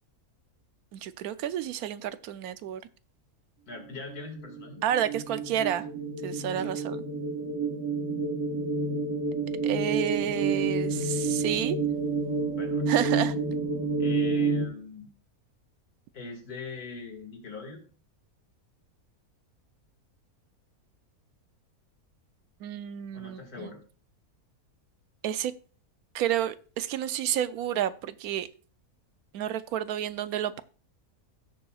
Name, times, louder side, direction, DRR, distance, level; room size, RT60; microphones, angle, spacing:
voice 1, 0.9-2.8 4.8-5.9 6.2-7.0 9.6-11.8 12.9-13.4 22.6-23.7 25.2-25.5 26.1-28.5 29.3-30.6, right 10 dB, 80° right, 1.1 m, -30 dB
voice 2, 3.7-4.8 6.5-6.7 12.5-12.9 13.9-15.1 16.1-17.8 23.1-23.8, left 4 dB, 80° left, 2.7 m, -41 dB
sound 1, 4.1-14.7, right 4 dB, 55° right, 1.6 m, -29 dB
16.5 x 6.8 x 2.4 m
omnidirectional pair, 1.6 m